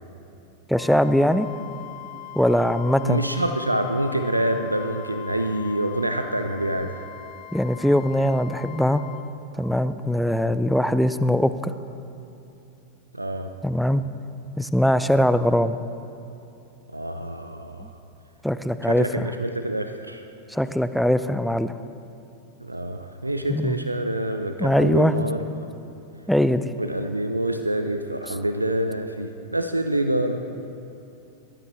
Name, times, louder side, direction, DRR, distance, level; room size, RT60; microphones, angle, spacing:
Wind instrument woodwind instrument, 0.7-9.3, left 14 dB, 35° left, 0.8 m, -41 dB
voice 1, 0.7-1.5 2.3-3.2 7.5-9.0 9.6-11.7 13.6-14.0 14.6-15.8 17.8-17.9 18.4-19.3 20.5-21.7 23.5-23.8 24.6-25.1 26.3-26.7, equal, ahead, 12 dB, 0.5 m, -21 dB
voice 2, 3.0-6.9 13.1-13.5 16.9-17.9 18.8-20.2 22.6-25.4 26.8-30.4, right 1 dB, 85° right, 7 dB, 0.6 m, -26 dB
18.5 x 12.5 x 4.1 m, 2.8 s
figure-of-eight pair, 90°, 0 cm